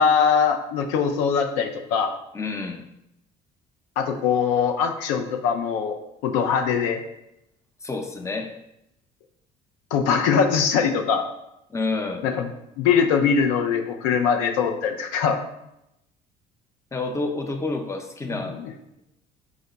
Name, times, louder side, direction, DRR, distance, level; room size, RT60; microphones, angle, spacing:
voice 1, 0.0-2.1 4.0-7.0 9.9-11.2 12.2-12.5 12.8-15.4 18.3-18.7, left 6 dB, 80° left, 5 dB, 0.5 m, -22 dB
voice 2, 2.3-2.8 7.8-8.5 11.7-12.3 16.9-18.6, left 3 dB, 15° left, 5 dB, 0.6 m, -29 dB
4.9 x 2.1 x 3.9 m, 0.84 s
supercardioid pair, 70°, 20 cm